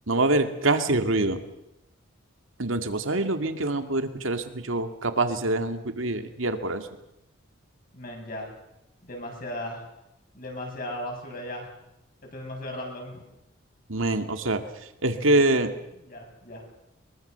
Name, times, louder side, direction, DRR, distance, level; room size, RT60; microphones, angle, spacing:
voice 1, 0.1-1.4 2.6-6.9 13.9-14.6 15.0-15.7, right 2 dB, 75° right, 8 dB, 2.1 m, -25 dB
voice 2, 7.9-8.5 9.0-9.8 10.3-11.7 12.2-13.2 15.3-15.6 16.1-16.6, left 1 dB, 45° left, 1 dB, 7.7 m, -37 dB
23.0 x 22.5 x 6.9 m, 0.86 s
head